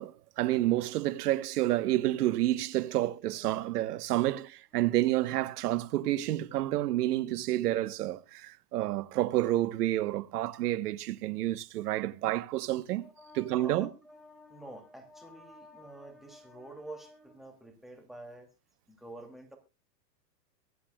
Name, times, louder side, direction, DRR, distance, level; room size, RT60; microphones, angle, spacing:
voice 1, 0.0-13.1 13.3-13.9, right 15 dB, 65° right, 1.2 m, -29 dB
voice 2, 13.0-18.5 18.9-19.6, right 1 dB, ahead, 2.6 m, -48 dB
23.5 x 8.4 x 2.3 m
hypercardioid pair, 130°, 49 cm